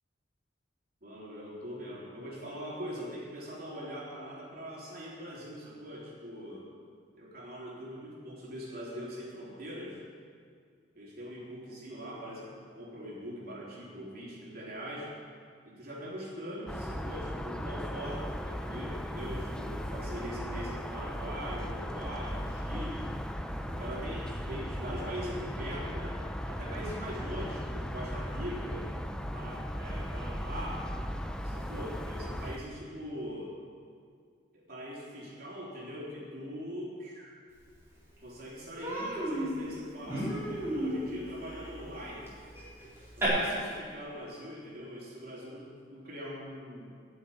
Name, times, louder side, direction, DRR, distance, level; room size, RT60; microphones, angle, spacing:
voice 1, 1.0-6.7 7.2-10.0 10.9-15.1 15.6-23.2 23.7-26.2 26.4-28.9 29.3-30.9 31.4-33.6 34.5-37.3 38.2-42.3 43.1-46.9, equal, 55° right, -5 dB, 3.7 m, -42 dB
sound 1, 16.7-32.6, equal, 5° left, 0.5 m, -37 dB
Human voice, 37.8-37.9 38.2-38.4 38.8-43.3, right 1 dB, 15° right, 4.0 m, -35 dB
12.0 x 7.8 x 8.6 m, 2.1 s
head